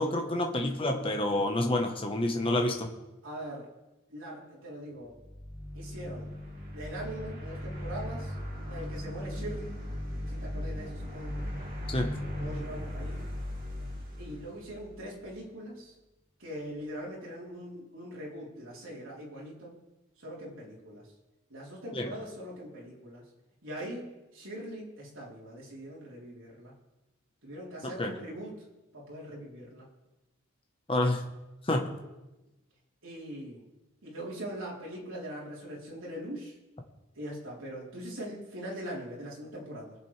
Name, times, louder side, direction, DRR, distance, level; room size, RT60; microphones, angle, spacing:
voice 1, 0.0-2.9 11.9-12.1 21.9-22.1 27.8-28.1 30.9-31.2 31.7-31.9, left 1 dB, 25° left, 3 dB, 1.0 m, -28 dB
voice 2, 3.2-3.7 4.1-5.1 5.7-6.3 6.7-8.3 8.7-9.7 10.3-11.4 12.4-13.2 14.2-15.9 16.4-19.7 20.2-21.1 21.5-23.2 23.6-24.1 24.3-26.7 27.4-28.5 28.9-29.9 33.0-33.6 34.0-36.5 37.2-39.9, equal, 70° right, -4 dB, 3.7 m, -41 dB
sound 1, 5.1-15.3, equal, 45° right, 2.5 m, -38 dB
22.5 x 7.6 x 3.3 m, 1.0 s
head